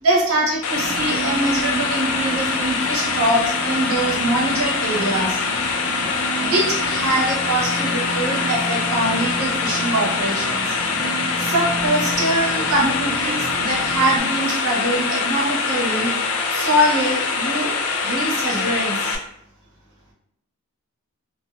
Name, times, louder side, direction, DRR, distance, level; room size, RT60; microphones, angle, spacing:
voice 1, 0.0-5.4 6.3-10.8 11.4-16.1 16.5-19.2, right 1 dB, 85° right, -2 dB, 0.8 m, -23 dB
sound 1, 0.6-19.2, left 4 dB, 75° left, 0.4 m, -24 dB
sound 2, 0.7-14.2, right 2 dB, 40° left, 0.7 m, -32 dB
2.4 x 2.3 x 2.3 m, 0.74 s
head